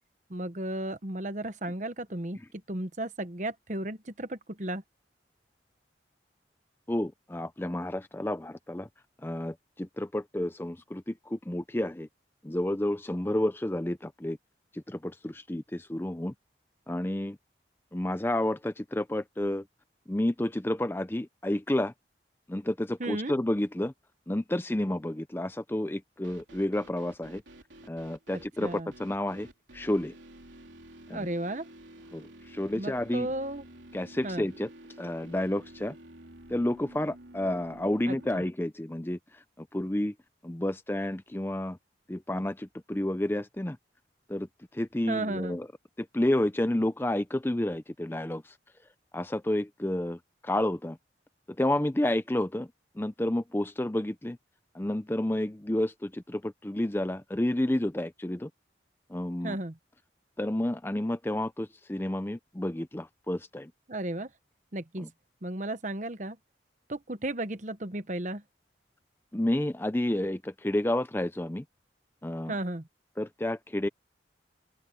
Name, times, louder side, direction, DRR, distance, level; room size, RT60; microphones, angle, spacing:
voice 1, 0.3-2.4 2.7-4.8 23.0-23.3 28.3-28.9 31.1-31.7 32.7-33.6 34.2-34.5 38.1-38.4 45.1-45.6 59.4-59.8 63.9-64.3 64.7-65.1 65.4-66.4 66.9-68.4 72.5-72.9, right 1 dB, 40° right, 1.1 m, -34 dB
voice 2, 6.9-8.9 9.2-12.1 12.4-14.4 14.7-16.3 16.9-17.4 17.9-19.6 20.1-21.9 22.5-23.9 24.3-27.4 27.9-29.5 29.7-30.1 31.1-31.3 32.1-33.3 33.9-34.7 35.0-35.9 36.5-39.2 39.6-40.1 40.4-41.8 42.1-43.8 44.3-44.5 44.7-45.7 46.0-48.5 49.1-50.2 50.4-51.0 51.6-52.7 53.0-54.4 54.7-58.5 59.1-59.6 60.4-63.7 65.0-65.1 69.3-71.6 72.2-72.5 73.2-73.9, left 1 dB, 10° left, 0.5 m, -30 dB
sound 1, 26.2-38.5, right 1 dB, 85° right, 3.6 m, -51 dB
open air
head